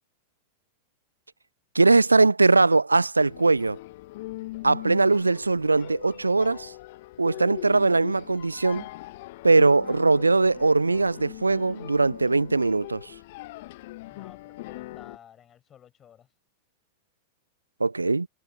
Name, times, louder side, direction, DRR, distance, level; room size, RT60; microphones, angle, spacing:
voice 1, 1.7-3.8 4.6-6.7 7.2-8.9 9.4-13.1 17.8-18.3, right 3 dB, 80° right, 0.6 m, -21 dB
sound 1, 3.2-15.2, left 19 dB, 50° left, 0.8 m, -41 dB
voice 2, 14.1-16.3, left 9 dB, 25° left, 4.9 m, -52 dB
figure-of-eight pair, 90°, 0 cm